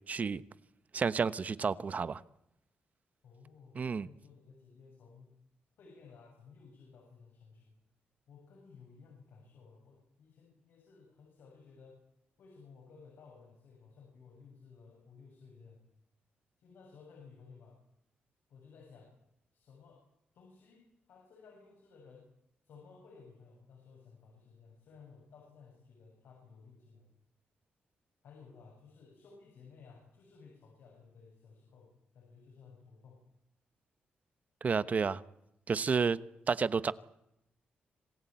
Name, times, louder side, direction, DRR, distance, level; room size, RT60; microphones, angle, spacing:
voice 1, 0.1-0.4 0.9-2.2 3.7-4.1 34.6-35.2 35.7-36.2 36.5-36.9, right 5 dB, 45° right, 1.0 m, -30 dB
voice 2, 3.2-5.3 5.8-7.8 8.3-12.0 12.4-15.8 16.6-17.8 18.5-19.1 19.5-20.0 20.3-22.2 22.6-27.1 28.2-33.2, left 5 dB, 80° left, 7.7 m, -57 dB
26.5 x 16.0 x 9.2 m
cardioid pair, 85°, 4 cm